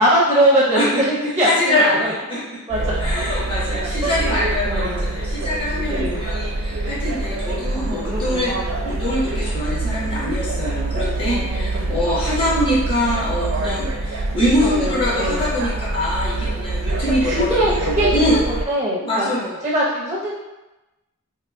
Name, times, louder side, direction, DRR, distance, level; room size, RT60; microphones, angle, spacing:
voice 1, 0.0-1.5 2.0-2.1 2.7-2.8 4.0-4.3 4.7-5.2 5.9-6.4 7.7-8.7 11.3-12.0 14.6-15.5 17.2-18.4 18.7-19.3 19.6-20.3, right 1 dB, 15° right, -6 dB, 0.5 m, -22 dB
voice 2, 1.4-2.7 3.0-8.5 8.8-17.8 18.1-18.4 19.0-19.5, left 1 dB, 25° left, -8 dB, 1.0 m, -23 dB
sound 1, 2.7-18.7, right 2 dB, 70° right, 0.5 m, -25 dB
4.7 x 2.7 x 2.4 m, 1.0 s
head